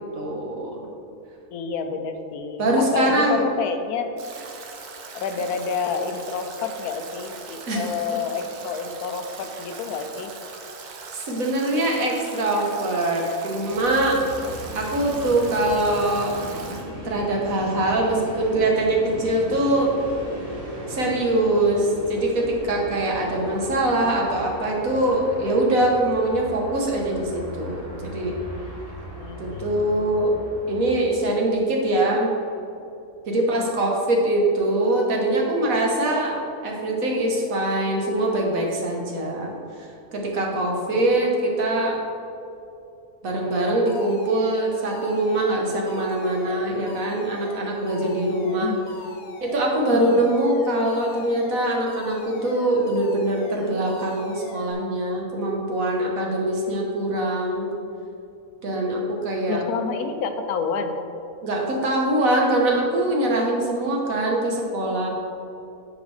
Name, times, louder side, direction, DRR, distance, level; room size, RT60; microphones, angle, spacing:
voice 1, 0.1-0.8 2.6-3.4 7.7-7.8 11.1-14.2 14.7-16.3 17.0-19.9 20.9-28.3 29.4-30.3 30.7-32.3 33.3-36.4 36.6-39.5 40.1-42.0 43.2-48.7 49.4-57.7 58.6-59.6 61.4-65.1, right 1 dB, 65° right, -1 dB, 1.5 m, -23 dB
voice 2, 1.5-4.1 5.1-10.3 29.2-30.5 31.2-31.5 33.4-33.7 40.5-41.0 48.4-48.9 49.9-50.3 59.5-60.9, left 6 dB, 90° left, 7 dB, 1.1 m, -29 dB
Stream / Drip / Trickle dribble, 4.2-16.8, right 4 dB, 85° right, 1.3 m, -40 dB
Train, 13.5-31.6, equal, 25° right, 1.2 m, -37 dB
Alarm, 43.9-54.7, left 4 dB, 60° left, 0.7 m, -42 dB
9.1 x 4.8 x 3.2 m, 2.7 s
omnidirectional pair, 1.6 m